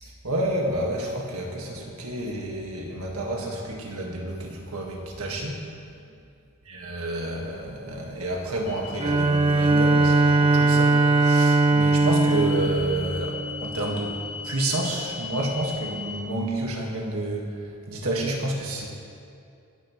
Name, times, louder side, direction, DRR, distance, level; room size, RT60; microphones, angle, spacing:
voice 1, 0.0-5.6 6.7-14.2 14.4-17.6 17.9-18.9, right 1 dB, 70° right, 0 dB, 1.8 m, -30 dB
sound 1, 8.7-16.2, left 5 dB, 85° left, 1.9 m, -38 dB
Bowed string instrument, 9.0-14.1, right 2 dB, 25° right, 0.4 m, -20 dB
24.0 x 9.3 x 3.2 m, 2.5 s
head